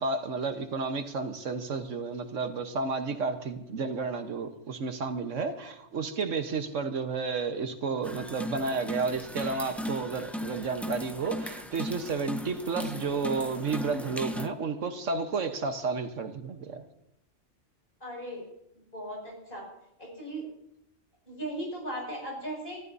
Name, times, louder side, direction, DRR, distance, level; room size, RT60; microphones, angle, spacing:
voice 1, 0.0-16.8, right 4 dB, 80° right, 7 dB, 1.5 m, -31 dB
sound 1, 8.0-14.5, left 1 dB, ahead, 0.5 m, -37 dB
voice 2, 18.0-18.4 18.9-19.6 20.0-20.4 21.3-22.8, right 1 dB, 45° left, -2 dB, 6.7 m, -37 dB
27.0 x 14.5 x 2.7 m, 0.80 s
omnidirectional pair, 1.3 m